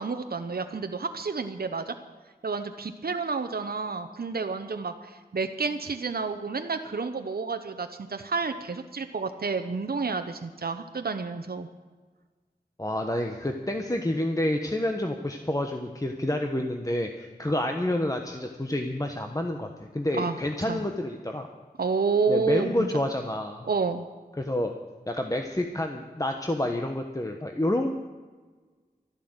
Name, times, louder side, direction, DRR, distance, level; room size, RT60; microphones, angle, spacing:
voice 1, 0.0-1.9 2.4-11.7 20.1-20.4 20.6-20.8 21.8-22.9 23.7-24.0, right 4 dB, 70° right, 7 dB, 0.9 m, -30 dB
voice 2, 12.8-21.5 22.3-23.7 24.4-24.7 25.1-27.9, left 1 dB, 20° left, 4 dB, 1.2 m, -29 dB
13.0 x 11.5 x 8.0 m, 1.4 s
wide cardioid pair, 45°, 16 cm